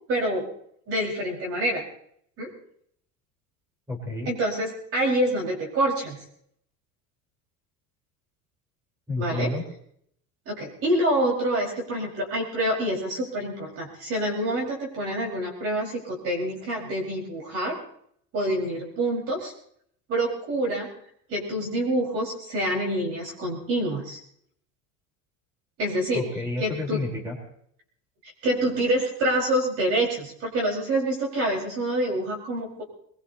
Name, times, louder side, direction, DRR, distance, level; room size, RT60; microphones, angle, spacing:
voice 1, 0.1-0.5 0.9-1.8 2.4-2.5 4.2-6.2 9.2-9.5 10.5-17.8 18.3-19.5 20.1-20.9 21.3-24.2 25.8-26.3 26.6-27.0 28.2-32.8, right 1 dB, 45° right, -2 dB, 4.8 m, -26 dB
voice 2, 3.9-4.3 9.1-9.6 26.1-27.4, left 2 dB, 10° right, -1 dB, 3.8 m, -30 dB
23.5 x 22.0 x 2.8 m, 0.68 s
cardioid pair, 155°, 33 cm